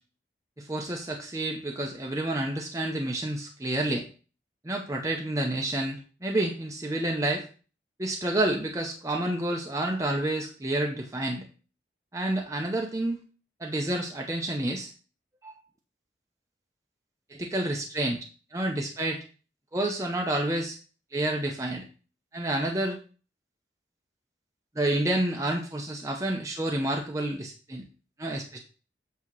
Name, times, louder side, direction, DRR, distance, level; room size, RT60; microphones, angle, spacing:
voice 1, 0.6-4.1 4.6-7.5 8.0-11.5 12.1-13.2 13.6-14.9 15.4-15.6 17.3-18.3 18.5-19.2 19.7-20.8 21.1-21.8 22.3-23.0 24.7-27.9 28.2-28.6, right 1 dB, 20° right, 1 dB, 0.7 m, -29 dB
8.4 x 2.9 x 6.0 m, 0.38 s
head